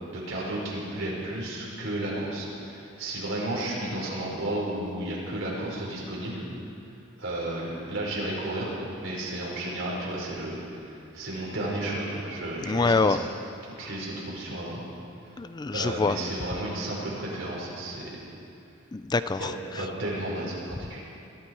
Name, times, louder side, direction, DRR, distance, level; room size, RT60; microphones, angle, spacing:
voice 1, 0.1-6.4 7.2-13.2 13.7-14.8 15.7-18.2 19.4-19.5 19.7-21.0, right 1 dB, 70° right, -5 dB, 5.1 m, -33 dB
voice 2, 12.6-13.2 15.4-16.2 18.9-19.5, left 3 dB, 20° left, 12 dB, 0.3 m, -25 dB
22.0 x 13.5 x 4.7 m, 2.7 s
head